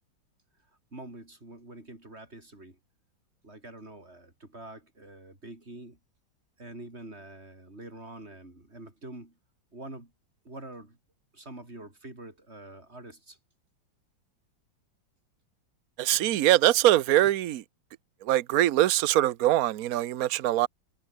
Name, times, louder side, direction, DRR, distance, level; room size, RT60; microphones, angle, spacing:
voice 1, 0.9-2.8 3.4-6.0 6.6-9.4 9.7-10.1 10.4-11.0 11.3-13.4, right 2 dB, 30° right, 6.1 m, -45 dB
voice 2, 16.0-17.6 18.2-20.7, right 14 dB, 60° right, 1.1 m, -23 dB
omnidirectional pair, 2.1 m